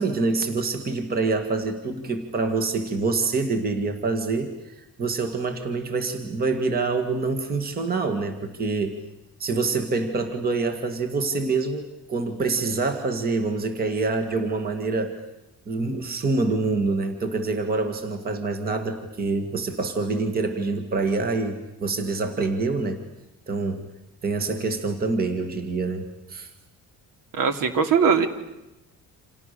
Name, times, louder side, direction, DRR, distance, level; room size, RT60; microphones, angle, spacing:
voice 1, 0.0-9.0 9.4-15.2 15.7-23.0 23.5-23.9 24.2-26.5, right 3 dB, 25° right, 7 dB, 1.9 m, -26 dB
voice 2, 27.3-28.3, right 6 dB, 75° right, 8 dB, 2.9 m, -20 dB
29.5 x 28.0 x 6.8 m, 0.94 s
cardioid pair, 180°, 33 cm